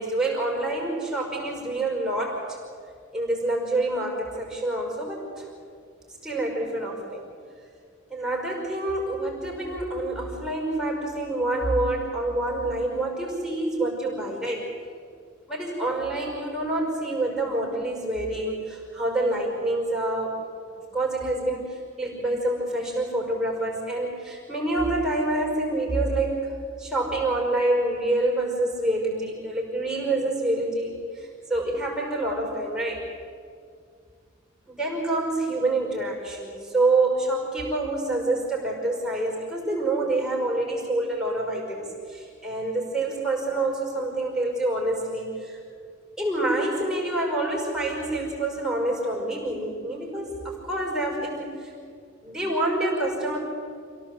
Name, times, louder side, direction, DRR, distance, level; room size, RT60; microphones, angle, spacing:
voice 1, 0.0-2.6 3.1-5.5 6.2-7.2 8.1-14.7 15.5-20.4 20.9-26.4 26.8-33.1 34.7-45.6 46.2-51.7 52.2-53.4, right 2 dB, 5° right, -3 dB, 5.6 m, -27 dB
27.5 x 17.0 x 8.1 m, 2.3 s
head